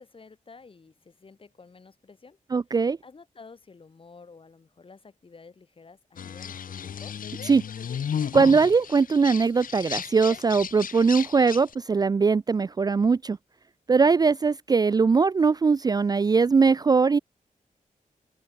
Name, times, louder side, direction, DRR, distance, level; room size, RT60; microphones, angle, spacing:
voice 1, 0.0-2.4 3.0-7.2, left 4 dB, 40° left, 6.5 m, -51 dB
voice 2, 2.5-3.0 7.5-7.6 8.3-13.4 13.9-17.2, right 5 dB, 30° right, 0.4 m, -21 dB
sound 1, 6.2-11.7, left 8 dB, 85° left, 2.4 m, -34 dB
open air
wide cardioid pair, 130°, 14 cm